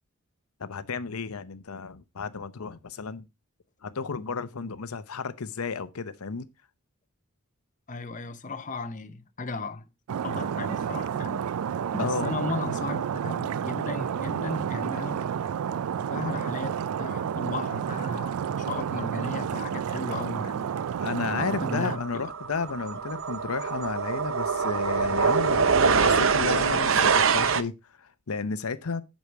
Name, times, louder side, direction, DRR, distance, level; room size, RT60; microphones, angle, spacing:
voice 1, 0.6-3.3 3.8-6.5 12.0-12.3 21.0-29.0, left 5 dB, 90° left, 0.7 m, -33 dB
voice 2, 7.9-9.8 10.2-11.4 11.9-15.3 16.1-20.7 21.3-22.2, left 3 dB, 35° left, 0.8 m, -35 dB
Stream, 10.1-22.0, right 8 dB, 85° right, 0.4 m, -30 dB
sound 1, 20.8-21.0 21.3-27.6, right 5 dB, 65° right, 0.7 m, -24 dB
8.4 x 6.3 x 4.6 m
head